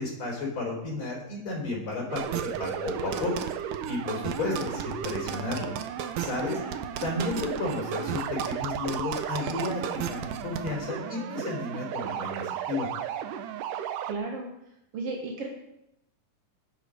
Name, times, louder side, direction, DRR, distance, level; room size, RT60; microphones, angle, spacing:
voice 1, 0.0-3.3 3.9-5.7 6.2-6.6 7.0-12.9, left 3 dB, 40° left, -1 dB, 4.9 m, -32 dB
sound 1, 2.1-14.1, right 9 dB, 90° right, 2.3 m, -35 dB
sound 2, 2.2-10.7, right 8 dB, 75° right, 2.1 m, -35 dB
voice 2, 14.1-14.5 14.9-15.5, right 3 dB, 55° right, 1 dB, 2.1 m, -34 dB
19.0 x 7.5 x 5.2 m, 0.85 s
omnidirectional pair, 3.6 m